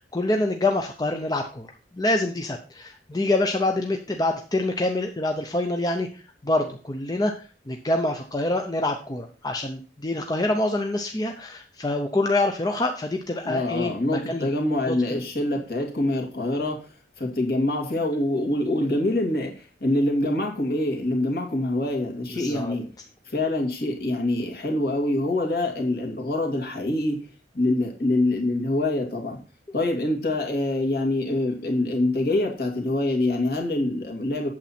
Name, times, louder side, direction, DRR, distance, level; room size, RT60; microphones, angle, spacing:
voice 1, 0.1-1.7 1.9-7.3 7.7-14.5 14.9-15.0 22.3-22.8, left 2 dB, 20° left, 4 dB, 0.7 m, -26 dB
voice 2, 13.4-16.8 17.2-19.5 19.8-22.9 23.3-27.3 27.5-29.4 29.7-34.5, left 1 dB, 55° left, 1 dB, 2.5 m, -25 dB
8.7 x 7.4 x 4.3 m, 0.37 s
head